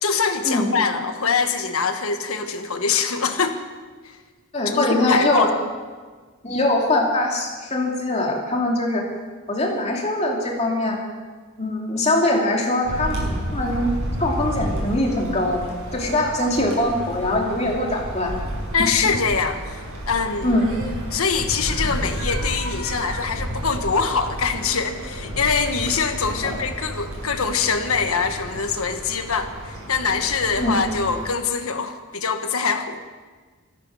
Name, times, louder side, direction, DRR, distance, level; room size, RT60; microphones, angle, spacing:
voice 1, 0.0-3.6 4.6-5.7 18.7-20.6 21.1-33.0, left 5 dB, 80° left, 7 dB, 1.5 m, -24 dB
voice 2, 4.5-5.5 6.4-9.0 9.5-11.0 11.6-13.2 13.5-13.9 14.2-15.6 15.9-18.3 20.4-20.7 30.6-30.8, left 1 dB, 30° left, -1 dB, 2.6 m, -22 dB
sound 1, 12.8-31.3, equal, 85° right, 6.4 m, -31 dB
15.0 x 14.0 x 6.5 m, 1.4 s
head